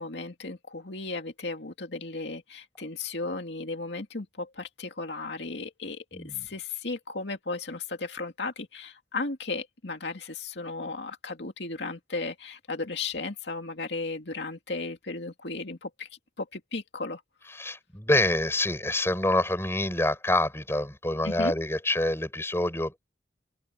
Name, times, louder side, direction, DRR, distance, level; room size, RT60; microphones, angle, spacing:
voice 1, 0.0-16.1 16.4-17.2 21.2-21.5, left 3 dB, 75° left, 2.3 m, -35 dB
voice 2, 6.1-6.5 17.5-22.9, left 1 dB, 15° left, 6.1 m, -26 dB
open air
head